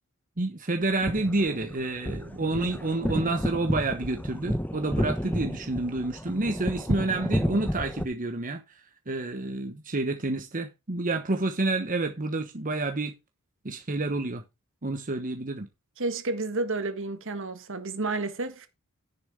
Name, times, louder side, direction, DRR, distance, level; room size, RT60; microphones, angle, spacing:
voice 1, 0.4-8.6 9.1-13.1 13.6-14.4 14.8-15.7, right 2 dB, 40° right, 1.1 m, -29 dB
sound 1, 0.8-8.0, equal, 10° left, 1.0 m, -31 dB
voice 2, 16.0-18.7, right 3 dB, 60° right, 1.7 m, -31 dB
10.5 x 6.9 x 4.8 m
head